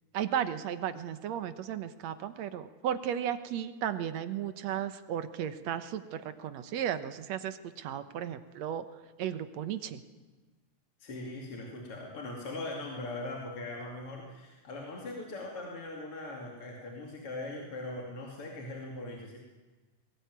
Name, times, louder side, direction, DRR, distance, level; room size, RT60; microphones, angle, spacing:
voice 1, 0.1-8.9 9.2-10.0, right 9 dB, 65° right, 11 dB, 2.1 m, -35 dB
voice 2, 11.0-19.4, left 2 dB, 45° left, -1 dB, 3.5 m, -40 dB
21.5 x 18.5 x 9.5 m, 1.3 s
omnidirectional pair, 3.6 m